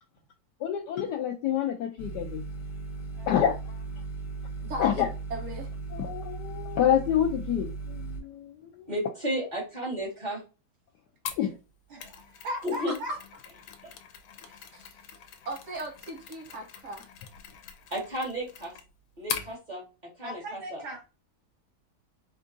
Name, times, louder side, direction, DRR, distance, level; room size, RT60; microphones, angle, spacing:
voice 1, 0.6-2.4 3.3-3.5 4.8-5.1 5.9-8.9 11.4-11.5, left 9 dB, 75° left, 1.0 m, -27 dB
sound 1, 2.0-8.2, right 3 dB, 45° left, 0.6 m, -37 dB
voice 2, 4.6-4.9 5.3-5.7 12.9-13.2 14.5-15.0 15.4-17.1, right 2 dB, 60° right, 0.9 m, -38 dB
voice 3, 8.9-10.4 12.6-12.9 13.8-13.9 17.9-18.7 19.2-19.8 20.2-20.8, equal, 25° right, 1.6 m, -33 dB
Mechanisms, 11.3-19.5, left 8 dB, 90° left, 1.5 m, -42 dB
voice 4, 11.9-13.2 20.2-21.1, equal, 90° right, 2.0 m, -38 dB
4.4 x 2.4 x 2.5 m
omnidirectional pair, 2.2 m